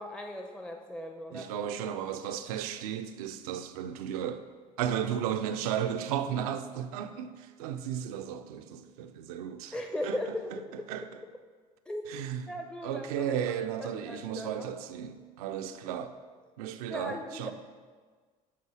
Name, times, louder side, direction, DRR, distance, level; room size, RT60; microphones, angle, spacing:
voice 1, 0.0-1.5 9.7-10.9 11.9-12.0 12.5-13.5 13.8-14.7 16.9-17.5, left 1 dB, 5° left, 0.5 m, -38 dB
voice 2, 1.3-4.4 4.8-9.7 10.0-10.2 10.9-11.0 12.1-12.4 12.8-16.1 16.6-17.5, right 9 dB, 70° right, 0.5 m, -34 dB
7.6 x 3.8 x 4.8 m
hypercardioid pair, 60°, 20 cm